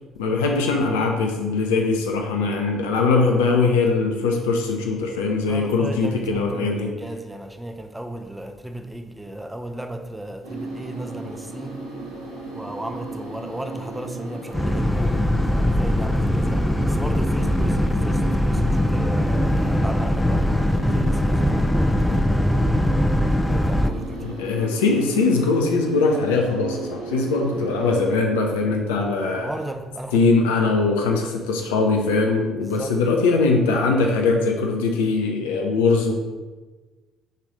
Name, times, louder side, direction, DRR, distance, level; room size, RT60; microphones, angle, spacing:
voice 1, 0.2-6.9 24.2-29.5 30.1-36.1, left 3 dB, 80° left, 0.5 m, -21 dB
voice 2, 5.4-11.9 12.5-22.3 23.2-24.4 29.2-30.2 32.6-33.2, right 1 dB, 10° right, 0.8 m, -35 dB
sound 1, 10.4-28.2, right 3 dB, 85° right, 1.2 m, -35 dB
Boat Water vehicle, 14.5-23.9, left 1 dB, 10° left, 0.4 m, -21 dB
6.6 x 3.1 x 5.1 m
hypercardioid pair, 50°, 0 cm